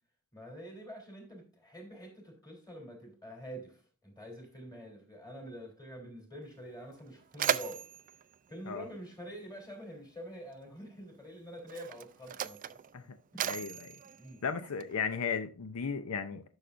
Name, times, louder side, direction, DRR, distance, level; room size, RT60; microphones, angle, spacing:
voice 1, 0.3-7.9 8.5-12.8 13.3-13.6 14.0-14.4, equal, 15° left, 3.3 m, -47 dB
Mechanisms, 6.4-6.5 6.9-9.6 10.6-10.8 11.6-15.2, right 9 dB, 35° right, 0.3 m, -37 dB
voice 2, 13.4-13.9 14.4-16.4, left 6 dB, 75° left, 0.6 m, -35 dB
11.5 x 6.5 x 2.5 m
head